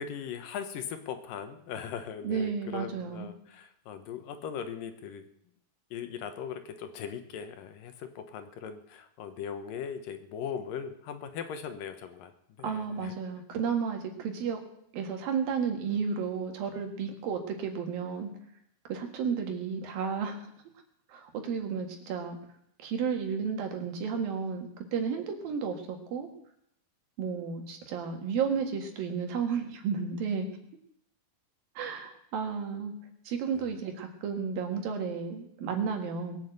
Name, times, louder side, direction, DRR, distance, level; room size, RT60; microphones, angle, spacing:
voice 1, 0.0-5.2 5.9-12.3 12.6-13.1 33.5-33.6, left 7 dB, 75° left, 8 dB, 2.6 m, -39 dB
voice 2, 2.2-3.3 12.6-14.6 14.9-18.3 18.9-20.4 21.1-22.4 22.8-26.3 27.2-30.5 31.8-32.9 33.3-36.4, right 6 dB, 75° right, 4 dB, 3.6 m, -32 dB
20.5 x 7.1 x 8.0 m, 0.72 s
omnidirectional pair, 4.2 m